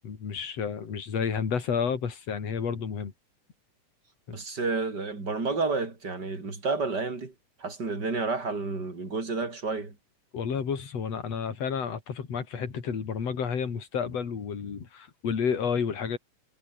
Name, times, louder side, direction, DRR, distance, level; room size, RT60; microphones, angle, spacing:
voice 1, 0.0-3.1 4.3-4.4 10.3-16.2, left 6 dB, 50° left, 4.1 m, -31 dB
voice 2, 4.3-7.3 7.6-9.9, right 3 dB, 30° right, 5.1 m, -30 dB
omnidirectional pair, 3.8 m